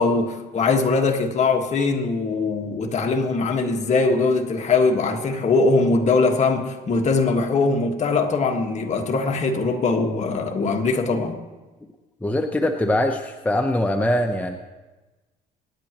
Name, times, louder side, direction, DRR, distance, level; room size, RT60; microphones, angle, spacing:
voice 1, 0.0-11.4, left 3 dB, 45° left, 3 dB, 1.7 m, -21 dB
voice 2, 12.2-14.6, left 1 dB, 10° left, 4 dB, 0.9 m, -22 dB
25.5 x 9.9 x 3.1 m, 1.2 s
cardioid pair, 110°, 17 cm